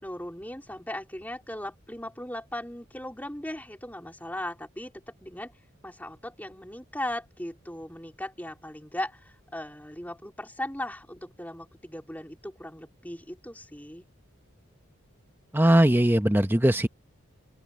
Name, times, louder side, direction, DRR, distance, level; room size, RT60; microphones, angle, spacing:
voice 1, 0.0-5.5 5.8-14.1, left 1 dB, 10° left, 3.9 m, -38 dB
voice 2, 15.5-16.9, right 1 dB, 10° right, 0.9 m, -20 dB
open air
head